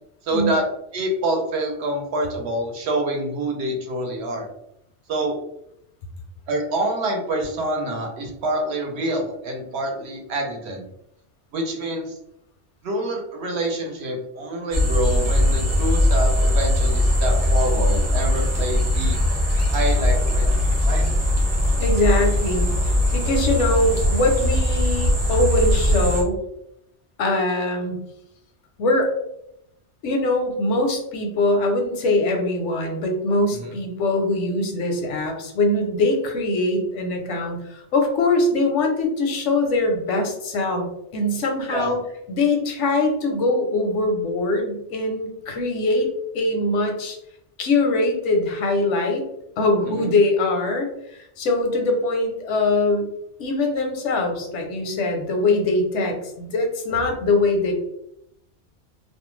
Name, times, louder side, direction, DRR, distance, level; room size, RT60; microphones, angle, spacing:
voice 1, 0.2-0.6 0.9-4.5 5.1-5.4 6.5-10.9 11.5-12.1 12.8-19.2 19.7-20.6 20.9-21.0 33.5-33.7 41.7-41.9 49.9-50.1, right 1 dB, 70° right, 1 dB, 0.9 m, -26 dB
sound 1, 14.7-26.2, left 1 dB, 15° right, 0.6 m, -20 dB
voice 2, 21.8-26.4 27.2-27.9 28.8-29.1 30.0-42.0 42.3-46.1 46.3-47.2 47.6-49.2 49.6-50.9 51.4-53.1 53.4-57.7, left 2 dB, 85° left, 3 dB, 1.0 m, -22 dB
2.5 x 2.1 x 3.0 m, 0.79 s
omnidirectional pair, 1.2 m